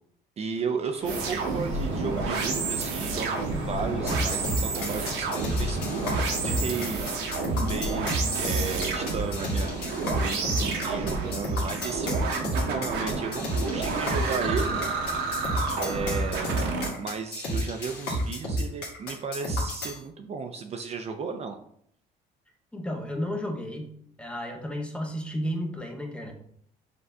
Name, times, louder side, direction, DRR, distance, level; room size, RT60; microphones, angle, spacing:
voice 1, 0.4-5.8 6.1-14.8 15.8-21.6, right 5 dB, 40° right, 5 dB, 0.4 m, -34 dB
sound 1, 1.0-6.9, left 2 dB, 50° left, 1.3 m, -41 dB
sound 2, 1.1-16.9, right 4 dB, 80° right, 0.8 m, -30 dB
sound 3, 4.1-20.0, equal, 80° left, 1.5 m, -30 dB
voice 2, 22.7-26.3, equal, 5° left, 2 dB, 0.7 m, -33 dB
6.3 x 2.6 x 2.3 m, 0.66 s
cardioid pair, 110°, 17 cm